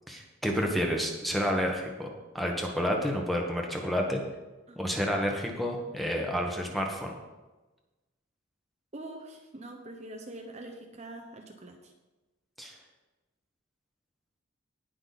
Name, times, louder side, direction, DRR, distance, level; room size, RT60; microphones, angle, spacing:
voice 1, 0.1-2.1 2.3-4.2 4.7-7.1 12.6-12.7, equal, ahead, 0 dB, 1.4 m, -30 dB
voice 2, 8.9-11.9, right 1 dB, 35° right, 2 dB, 0.9 m, -44 dB
18.0 x 6.1 x 4.1 m, 1.1 s
head